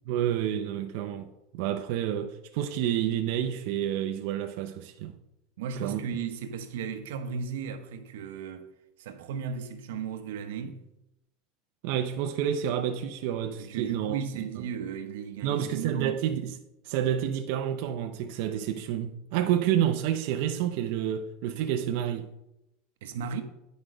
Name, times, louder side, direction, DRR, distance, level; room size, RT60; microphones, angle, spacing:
voice 1, 0.1-5.1 5.8-6.0 11.8-14.2 14.5-14.6 15.4-16.5 16.8-22.3, right 10 dB, 50° right, 0.5 m, -29 dB
voice 2, 5.6-8.7 9.0-10.8 13.6-16.2 23.0-23.4, right 6 dB, 90° right, 0.9 m, -35 dB
9.7 x 5.2 x 5.0 m
supercardioid pair, 175°, 0 cm